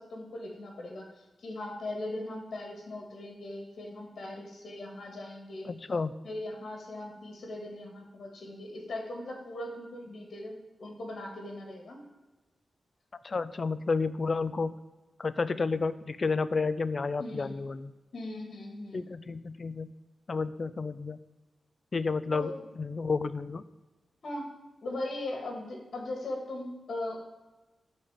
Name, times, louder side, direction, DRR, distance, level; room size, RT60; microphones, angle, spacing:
voice 1, 0.0-5.7 6.2-12.0 17.2-17.6 18.1-19.0 22.3-22.7 24.2-24.6 24.8-27.2, left 1 dB, 60° left, 2 dB, 2.0 m, -39 dB
voice 2, 5.7-6.1 13.2-14.7 15.2-17.9 18.9-19.9 20.3-21.2 21.9-22.5 22.8-23.6, left 4 dB, 40° left, 14 dB, 0.4 m, -31 dB
11.0 x 4.3 x 7.3 m, 1.1 s
wide cardioid pair, 140°, 0 cm